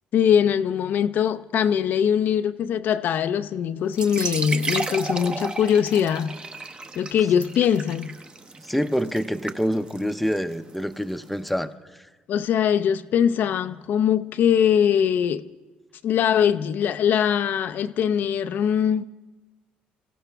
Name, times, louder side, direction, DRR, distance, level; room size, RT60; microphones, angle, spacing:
voice 1, 0.1-6.3 7.0-8.1 12.3-15.5 16.0-19.0, left 8 dB, 60° left, 0.5 m, -22 dB
sound 1, 3.9-11.5, right 3 dB, 25° right, 0.8 m, -34 dB
voice 2, 8.6-11.7, equal, ahead, 0.7 m, -26 dB
26.0 x 16.0 x 3.4 m
cardioid pair, 90°, 4 cm